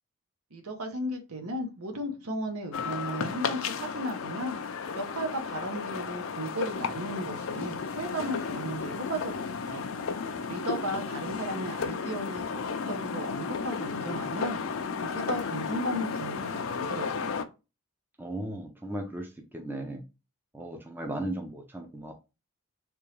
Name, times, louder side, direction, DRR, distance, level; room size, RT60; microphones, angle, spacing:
voice 1, 0.5-4.6 5.0-9.8 10.5-14.6 15.0-17.4, right 1 dB, 80° right, 5 dB, 1.0 m, -35 dB
sound 1, 2.7-17.4, left 5 dB, 60° left, 0.4 m, -33 dB
voice 2, 18.2-20.0 20.5-22.1, right 1 dB, 10° right, 2 dB, 0.5 m, -36 dB
3.5 x 3.0 x 3.2 m, 0.28 s
head